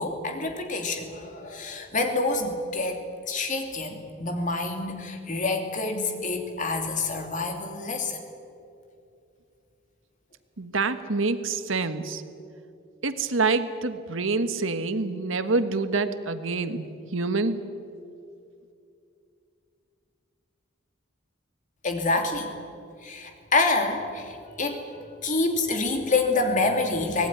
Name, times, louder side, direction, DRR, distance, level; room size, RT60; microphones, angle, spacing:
voice 1, 0.0-3.0 3.3-8.2 21.8-22.5 23.0-27.3, left 3 dB, 40° left, 4 dB, 2.9 m, -27 dB
voice 2, 10.6-12.2 13.0-17.6, right 3 dB, 75° right, 10 dB, 1.4 m, -26 dB
24.5 x 18.5 x 9.8 m, 2.6 s
head